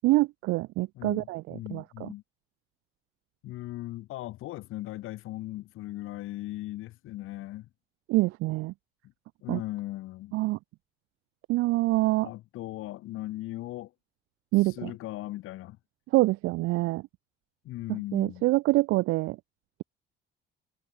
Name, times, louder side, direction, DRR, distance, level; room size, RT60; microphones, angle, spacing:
voice 1, 0.0-1.4 1.7-2.1 8.1-8.7 9.5-9.6 10.3-10.6 11.5-12.3 14.5-14.9 16.1-17.0 18.1-19.4, right 20 dB, 85° right, 0.4 m, -25 dB
voice 2, 0.9-2.2 3.4-7.7 9.4-10.4 12.2-13.9 14.6-15.8 17.6-18.4, left 16 dB, 85° left, 7.5 m, -38 dB
cardioid pair, 100°, 21 cm